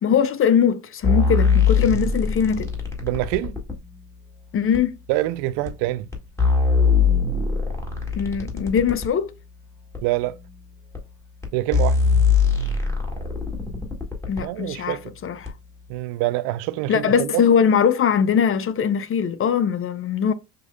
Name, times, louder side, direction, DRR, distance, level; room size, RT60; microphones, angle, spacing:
voice 1, 0.0-2.7 4.5-4.9 8.2-9.3 14.3-15.0 15.2-15.5 16.9-20.3, left 7 dB, 30° left, 0.5 m, -21 dB
sound 1, 1.0-3.8 4.7-4.8 5.6-5.7 6.1-9.1 9.9-10.0 10.9-11.0 11.4-11.5 11.7-14.4 15.4-15.5, left 5 dB, 5° left, 2.0 m, -21 dB
voice 2, 3.0-3.6 5.1-6.1 10.0-10.4 11.5-12.0 14.4-15.1 15.9-17.6, right 16 dB, 70° right, 0.5 m, -25 dB
6.5 x 2.7 x 2.2 m
supercardioid pair, 85°, 42 cm